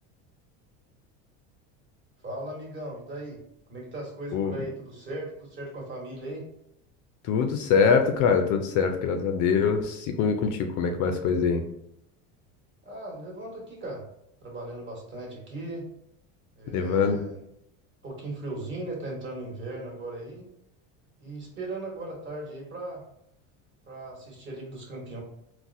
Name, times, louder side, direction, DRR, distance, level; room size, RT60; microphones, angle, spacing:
voice 1, 2.2-3.4 3.7-6.5 12.8-14.0 14.4-15.9 16.6-17.4 18.0-20.5 21.2-23.0 23.9-25.2, right 2 dB, 30° right, -2 dB, 1.2 m, -37 dB
voice 2, 7.2-11.6 16.7-17.2, left 6 dB, 55° left, 6 dB, 0.4 m, -24 dB
4.0 x 2.1 x 2.5 m, 0.76 s
supercardioid pair, 130°, 37 cm